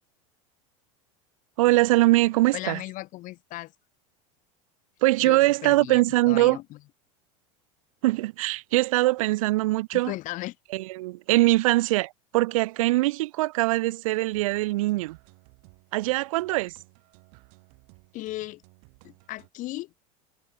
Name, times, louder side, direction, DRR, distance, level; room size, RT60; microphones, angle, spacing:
voice 1, 1.6-2.8 5.0-6.6 8.0-10.1 10.7-15.2 15.9-16.7, right 19 dB, 80° right, 0.7 m, -22 dB
voice 2, 2.5-3.7 5.2-6.8 9.9-10.5 18.1-18.6 19.0-19.9, left 17 dB, 50° left, 4.9 m, -36 dB
sound 1, 14.3-19.5, right 40 dB or more, 60° right, 5.9 m, -57 dB
supercardioid pair, 120°, 17 cm